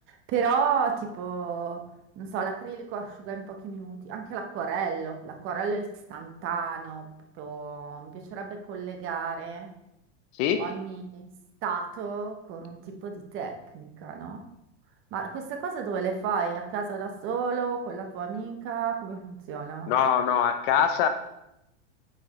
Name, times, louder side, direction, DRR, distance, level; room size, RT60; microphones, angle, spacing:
voice 1, 0.3-1.8 2.2-7.0 7.4-9.7 10.6-11.3 11.6-14.4 15.1-19.9, right 6 dB, 35° right, 4 dB, 1.0 m, -32 dB
voice 2, 19.9-21.1, left 8 dB, 45° left, 8 dB, 0.6 m, -23 dB
8.8 x 4.6 x 3.1 m, 0.84 s
supercardioid pair, 145°, 36 cm